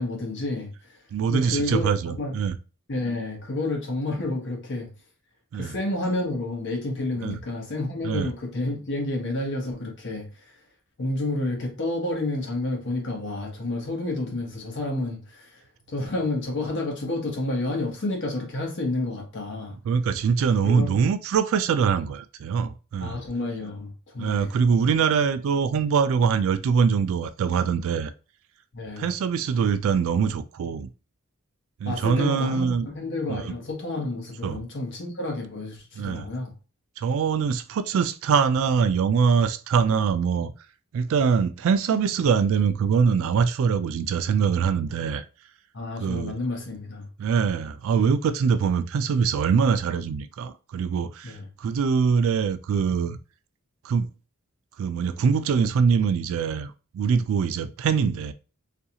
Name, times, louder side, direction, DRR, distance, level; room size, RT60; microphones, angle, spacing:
voice 1, 0.0-1.0 1.3-2.4 2.9-4.9 5.5-10.5 11.0-15.6 15.9-19.7 20.6-21.1 23.0-24.6 28.7-29.1 31.8-36.5 45.7-47.1 51.2-51.5, left 2 dB, 55° left, 0.9 m, -30 dB
voice 2, 1.1-2.6 5.5-5.7 7.2-7.4 8.0-8.3 19.9-23.2 24.2-28.1 29.0-30.9 31.8-32.9 33.3-33.4 34.4-34.6 36.0-36.3 37.0-40.5 40.9-45.2 46.0-46.3 47.2-53.2 53.8-54.1 54.8-58.3, right 6 dB, 65° right, 0.3 m, -23 dB
2.5 x 2.3 x 2.8 m
head